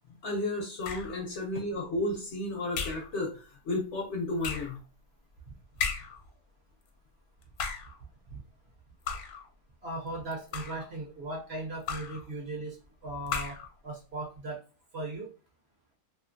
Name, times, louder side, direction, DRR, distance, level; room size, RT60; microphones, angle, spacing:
voice 1, 0.2-4.8, left 2 dB, 65° left, 0 dB, 0.7 m, -33 dB
sound 1, 0.8-1.3 2.7-3.1 4.4-4.8 5.8-6.3 7.4-8.0 9.1-9.5 10.3-10.9 11.9-12.3 13.3-13.7, left 6 dB, 80° left, 1.1 m, -35 dB
voice 2, 9.8-12.8 13.0-13.6 13.8-14.6 14.9-15.3, right 2 dB, 60° right, -2 dB, 0.7 m, -37 dB
2.6 x 2.5 x 2.5 m, 0.35 s
omnidirectional pair, 1.6 m